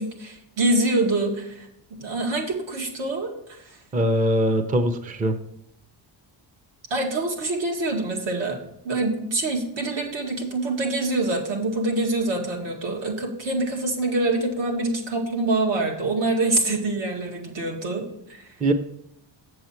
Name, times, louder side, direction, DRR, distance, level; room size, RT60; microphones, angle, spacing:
voice 1, 0.0-1.7 2.0-3.8 6.9-8.6 8.8-18.5, right 2 dB, 75° right, 1 dB, 2.1 m, -25 dB
voice 2, 3.9-5.3 18.6-18.7, right 1 dB, 20° right, 7 dB, 0.5 m, -21 dB
7.8 x 7.3 x 4.4 m, 0.77 s
cardioid pair, 165°, 44 cm